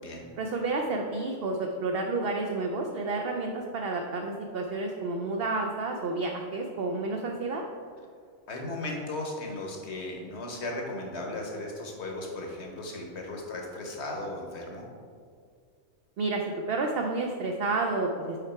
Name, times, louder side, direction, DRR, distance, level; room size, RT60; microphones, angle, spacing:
voice 1, 0.4-7.6 16.2-16.4 16.7-18.4, right 3 dB, 60° right, 1 dB, 0.6 m, -30 dB
voice 2, 8.5-14.9, left 2 dB, 60° left, 0 dB, 1.3 m, -36 dB
5.8 x 4.7 x 4.4 m, 2.1 s
omnidirectional pair, 1.3 m